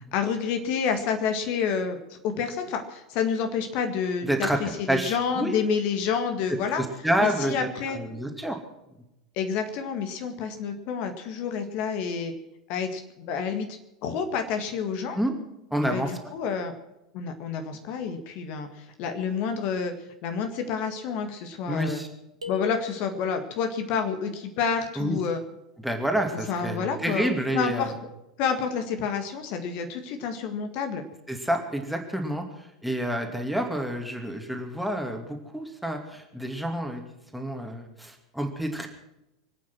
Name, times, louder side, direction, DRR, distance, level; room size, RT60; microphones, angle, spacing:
voice 1, 0.1-6.8 7.2-8.0 9.4-12.3 12.7-13.7 14.0-15.2 15.9-16.7 17.1-19.9 20.2-22.0 22.5-25.4 26.3-27.9 28.4-31.0, left 6 dB, 45° left, 6 dB, 1.9 m, -29 dB
voice 2, 4.2-5.5 6.8-8.6 15.1-15.3 15.7-16.1 21.7-22.1 25.0-25.2 25.8-27.9 31.3-37.0 37.3-38.9, right 1 dB, ahead, 3 dB, 2.5 m, -28 dB
sound 1, 22.4-23.5, left 8 dB, 80° right, 1.8 m, -38 dB
25.0 x 9.1 x 6.1 m, 0.91 s
figure-of-eight pair, 85°, 3 cm